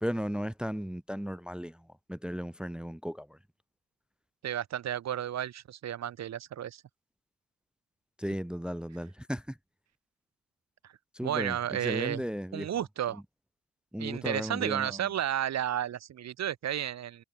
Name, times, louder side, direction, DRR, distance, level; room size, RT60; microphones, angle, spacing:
voice 1, 0.0-3.4 8.2-9.6 11.1-12.9 13.1-13.2 13.9-15.1, equal, 5° right, 0.8 m, -35 dB
voice 2, 4.4-6.8 10.8-10.9 11.2-12.2 12.5-13.2 14.0-17.2, right 10 dB, 50° right, 1.6 m, -32 dB
hypercardioid pair, 50°, 34 cm